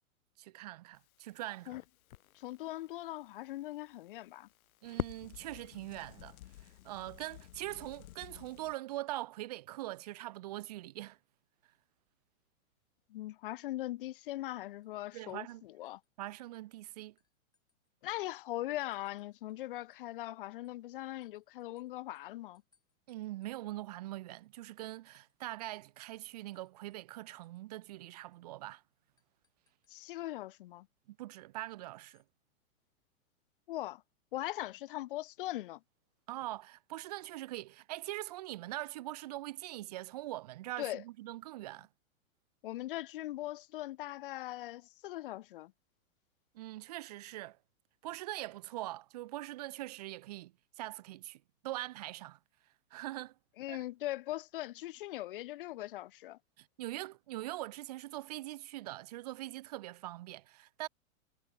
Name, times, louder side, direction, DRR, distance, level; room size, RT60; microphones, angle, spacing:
voice 1, 0.4-1.8 4.8-11.2 15.1-15.6 16.2-17.2 23.1-28.8 31.1-32.2 36.3-41.9 46.5-47.6 48.0-52.4 52.9-53.3 53.7-53.8 56.6-60.9, right 16 dB, 30° right, 0.5 m, -42 dB
Crackle, 0.9-8.7, left 14 dB, 85° left, 0.6 m, -48 dB
voice 2, 2.3-4.5 13.1-16.0 18.0-22.6 29.9-30.9 33.7-34.0 34.3-35.8 40.8-41.0 42.6-45.7 53.6-56.4, left 16 dB, 40° left, 0.6 m, -40 dB
sound 1, 14.8-16.3 16.5-18.2 18.8-19.6 19.9-25.5 25.7-25.9 26.1-27.6 27.9-28.0 28.3-28.5 29.2-30.0 31.9-32.3, left 5 dB, 10° left, 5.1 m, -80 dB
hypercardioid pair, 155°, 42 cm